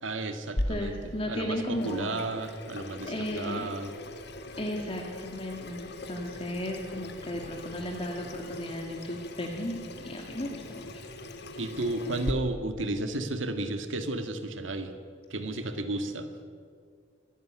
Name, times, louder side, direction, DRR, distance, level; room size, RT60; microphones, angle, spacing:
voice 1, 0.0-3.9 11.6-15.0 15.3-16.3, right 2 dB, 80° right, 7 dB, 1.7 m, -33 dB
Water tap faucet / Sink (filling or washing), 0.6-12.3, left 1 dB, 60° left, 1.7 m, -39 dB
voice 2, 0.7-2.2 3.0-3.6 4.6-9.8 10.0-11.0, left 1 dB, 30° left, 1 dB, 2.0 m, -35 dB
25.0 x 12.0 x 10.0 m, 2.1 s
head